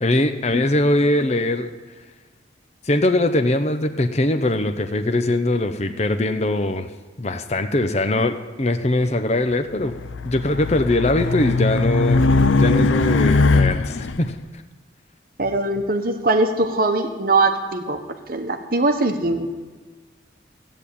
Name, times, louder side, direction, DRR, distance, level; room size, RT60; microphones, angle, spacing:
voice 1, 0.0-1.7 2.8-6.9 7.2-9.9 10.2-12.2 12.5-14.3, left 1 dB, 35° left, 7 dB, 0.7 m, -21 dB
Race car auto racing, 9.8-14.2, left 3 dB, 90° left, 0.6 m, -19 dB
voice 2, 15.4-18.0 18.3-19.5, right 2 dB, 50° right, 6 dB, 1.2 m, -21 dB
14.0 x 9.1 x 8.5 m, 1.4 s
head